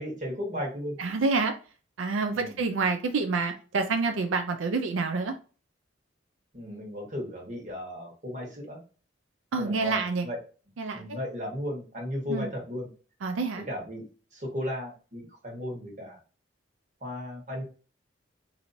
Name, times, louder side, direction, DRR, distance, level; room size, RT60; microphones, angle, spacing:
voice 1, 0.0-1.0 2.3-2.6 6.5-8.8 9.6-10.4 10.9-12.9 13.6-14.0 14.3-16.2 17.0-17.6, left 1 dB, 40° right, -1 dB, 1.3 m, -35 dB
voice 2, 1.0-1.5 2.0-5.3 9.5-10.3 10.8-11.0 12.3-12.5 13.2-13.7, right 4 dB, 90° right, 6 dB, 0.5 m, -27 dB
4.4 x 2.7 x 2.7 m, 0.36 s
head